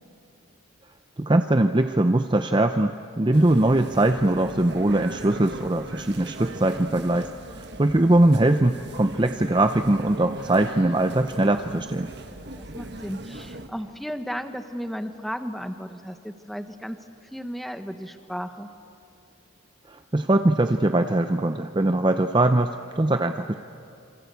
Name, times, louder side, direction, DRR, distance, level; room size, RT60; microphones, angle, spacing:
voice 1, 1.2-7.3 7.6-12.1 19.9-23.5, right 1 dB, 20° right, 8 dB, 0.6 m, -21 dB
sound 1, 3.3-13.7, right 1 dB, 55° right, 1.6 m, -39 dB
voice 2, 8.9-9.3 12.6-17.0 17.3-18.7, equal, ahead, 8 dB, 1.1 m, -34 dB
27.0 x 26.0 x 8.3 m, 2.5 s
head